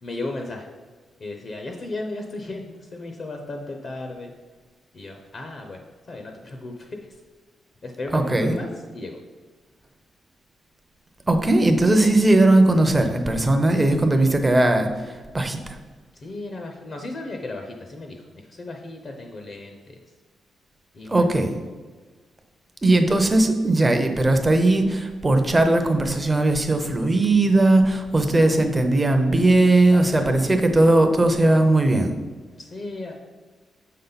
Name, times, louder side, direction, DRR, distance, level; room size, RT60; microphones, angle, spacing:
voice 1, 0.0-0.7 1.2-4.3 4.9-5.8 6.1-7.0 7.8-8.7 8.9-9.2 16.1-20.0 20.9-21.3 28.3-28.7 29.8-30.4 32.6-33.1, left 2 dB, 35° left, 3 dB, 0.7 m, -35 dB
voice 2, 8.1-8.5 11.3-15.8 21.1-21.5 22.8-32.1, right 2 dB, 15° right, 6 dB, 0.6 m, -18 dB
7.4 x 5.6 x 4.0 m, 1.4 s
wide cardioid pair, 175°, 0 cm